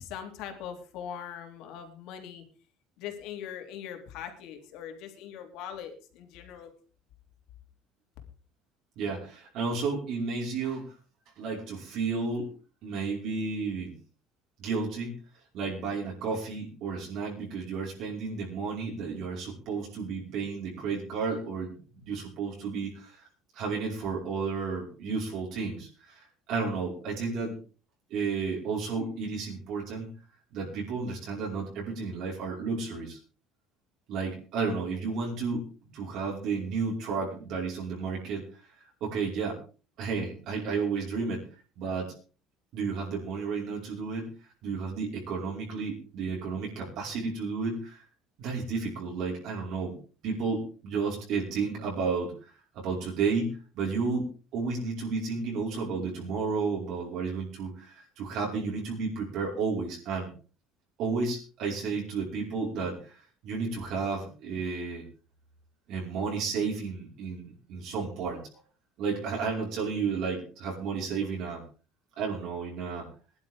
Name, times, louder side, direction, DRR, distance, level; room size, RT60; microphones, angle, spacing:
voice 1, 0.0-2.4 3.0-6.7, left 9 dB, 60° left, 5 dB, 3.3 m, -41 dB
voice 2, 9.0-10.9 11.4-12.5 12.8-13.9 14.6-15.2 15.5-23.2 23.5-27.6 28.1-30.1 30.5-33.2 34.1-38.4 39.0-39.6 40.0-41.4 41.8-42.1 42.7-44.3 44.6-48.0 48.4-49.9 50.2-52.3 52.7-60.3 61.0-65.0 65.9-68.4 69.0-71.6 72.2-73.1, right 4 dB, 50° right, -2 dB, 5.3 m, -32 dB
22.0 x 11.5 x 3.8 m, 0.37 s
cardioid pair, 175°, 0 cm